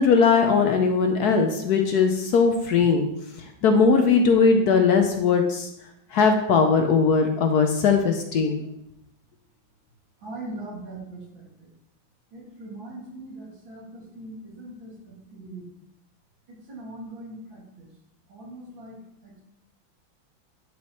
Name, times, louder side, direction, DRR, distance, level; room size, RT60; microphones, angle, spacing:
voice 1, 0.0-3.1 3.6-5.7 6.1-8.6, left 5 dB, 65° left, 5 dB, 1.1 m, -19 dB
voice 2, 10.2-11.7 12.3-15.7 16.5-17.9 18.3-19.4, right 2 dB, 80° right, -4 dB, 3.1 m, -41 dB
11.0 x 4.8 x 3.1 m, 0.79 s
omnidirectional pair, 2.1 m